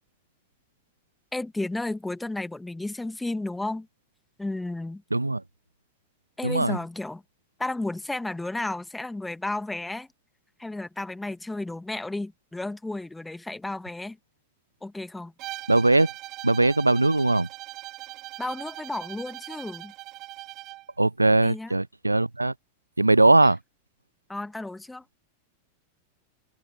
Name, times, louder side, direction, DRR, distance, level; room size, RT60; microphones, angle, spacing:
voice 1, 1.3-3.9 4.4-5.0 6.4-7.2 7.6-10.1 10.6-14.2 14.8-15.3 18.4-19.9 21.4-21.7 24.3-25.0, left 2 dB, 5° left, 1.9 m, -33 dB
voice 2, 5.1-5.4 6.4-6.8 15.7-16.1 16.4-17.5 21.0-22.5 23.0-23.6, right 2 dB, 85° right, 0.5 m, -20 dB
Bowed string instrument, 15.4-20.9, right 17 dB, 35° right, 2.6 m, -40 dB
figure-of-eight pair, 90°, 0 cm